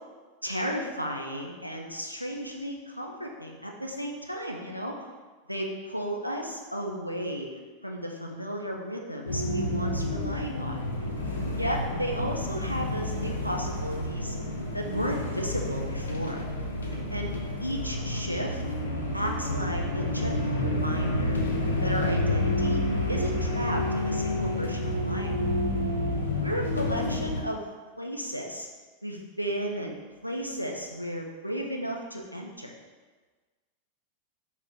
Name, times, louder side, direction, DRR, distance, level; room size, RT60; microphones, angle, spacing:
voice 1, 0.4-5.0 5.5-10.8 11.6-14.4 14.7-16.4 17.1-17.3 17.6-18.6 19.1-21.4 21.8-22.8 23.1-25.3 26.4-27.6 28.0-28.7 29.0-30.0 30.2-32.7, equal, 90° right, 0 dB, 0.3 m, -34 dB
sound 1, 9.3-27.4, left 1 dB, 70° left, 0.4 m, -29 dB
2.7 x 2.0 x 3.5 m, 1.4 s
figure-of-eight pair, 90°, 0 cm